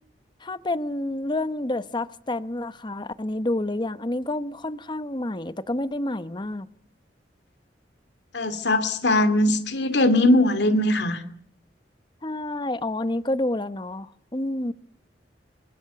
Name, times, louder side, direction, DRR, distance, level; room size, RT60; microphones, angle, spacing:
voice 1, 0.4-6.7 12.2-14.7, left 1 dB, 25° left, 1.0 m, -29 dB
voice 2, 8.3-11.2, left 1 dB, 70° left, 2.6 m, -20 dB
24.5 x 22.0 x 6.9 m
head